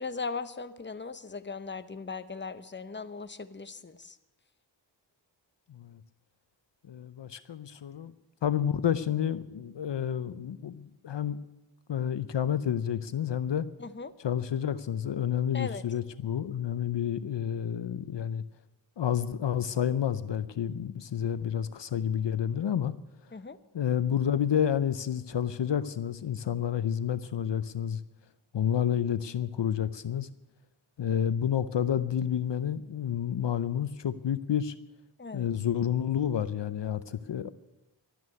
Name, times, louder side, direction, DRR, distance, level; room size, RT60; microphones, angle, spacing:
voice 1, 0.0-4.2 13.8-14.1 15.5-15.8 23.3-23.6 35.2-35.5, left 4 dB, 25° left, 12 dB, 0.9 m, -38 dB
voice 2, 5.7-6.0 6.8-8.1 8.4-11.4 11.9-13.7 14.2-18.4 19.0-22.9 23.7-28.0 28.5-30.3 31.0-34.7 35.3-37.5, left 9 dB, 70° left, 14 dB, 0.7 m, -30 dB
12.5 x 9.4 x 9.5 m, 1.0 s
cardioid pair, 45°, 45 cm